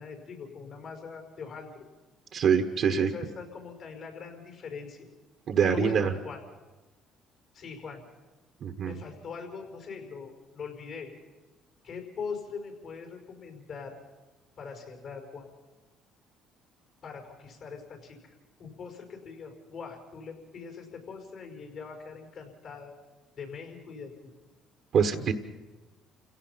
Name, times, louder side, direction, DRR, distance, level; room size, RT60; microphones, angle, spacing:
voice 1, 0.0-1.8 2.9-5.1 5.6-6.4 7.5-8.0 8.8-11.1 11.8-14.0 14.6-15.5 17.0-18.3 18.6-23.0 23.4-24.1, left 5 dB, 60° left, 4 dB, 5.4 m, -41 dB
voice 2, 2.3-3.1 5.5-6.1 8.6-9.0 24.9-25.3, right 7 dB, 60° right, 6 dB, 1.3 m, -24 dB
29.0 x 17.0 x 5.8 m, 1.2 s
supercardioid pair, 80°, 0 cm